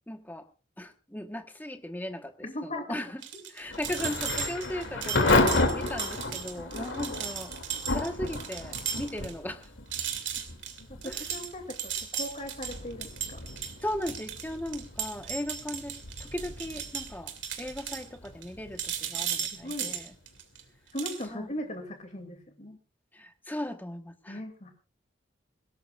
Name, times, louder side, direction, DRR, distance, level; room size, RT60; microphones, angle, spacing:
voice 1, 0.1-0.5 0.8-3.2 3.5-7.5 7.9-9.7 11.0-11.2 13.8-20.1 21.3-21.5 23.1-24.4, left 1 dB, 10° left, 6 dB, 1.2 m, -37 dB
voice 2, 2.4-3.0 10.9-13.4 19.5-20.0 20.9-22.8 24.3-24.7, left 1 dB, 35° left, 4 dB, 2.6 m, -38 dB
sound 1, 3.2-9.3 9.6-9.7 9.9-18.5 18.8-20.6 21.0-21.2, right 8 dB, 65° right, 2.6 m, -36 dB
Thunder / Rain, 3.7-20.4, left 2 dB, 75° left, 2.7 m, -33 dB
21.5 x 17.5 x 2.5 m, 0.34 s
head